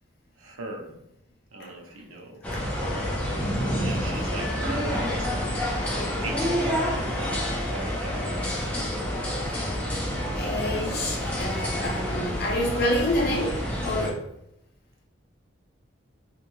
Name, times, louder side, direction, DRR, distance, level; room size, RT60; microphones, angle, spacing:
voice 1, 0.4-0.9 1.5-2.4 2.8-5.5 6.2-8.2, right 2 dB, 90° right, 2 dB, 0.5 m, -39 dB
sound 1, 2.4-14.1, equal, 5° left, 0.4 m, -28 dB
voice 2, 10.3-14.2, left 1 dB, 50° left, -1 dB, 0.7 m, -28 dB
2.5 x 2.2 x 3.0 m, 0.80 s
head